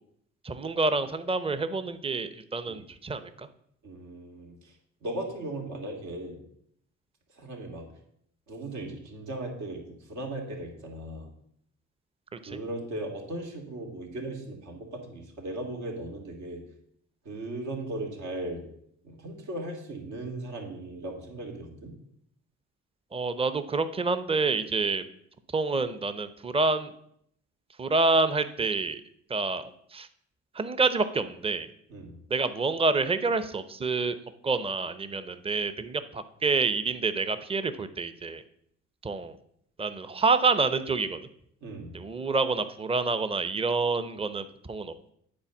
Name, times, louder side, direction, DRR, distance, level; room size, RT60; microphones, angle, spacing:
voice 1, 0.4-3.5 12.3-12.6 23.1-25.0 25.5-26.9 27.8-29.0 29.3-30.1 30.5-31.7 32.3-34.2 34.4-38.4 39.0-39.4 39.8-41.2 41.9-45.1, right 3 dB, 20° right, 12 dB, 0.7 m, -28 dB
voice 2, 3.8-6.4 7.3-7.9 8.5-11.3 12.4-16.6 17.2-18.6 19.0-21.9 31.9-32.2 41.6-42.0, right 1 dB, 75° right, 1 dB, 2.6 m, -37 dB
8.7 x 4.3 x 7.1 m, 0.70 s
cardioid pair, 90°, 30 cm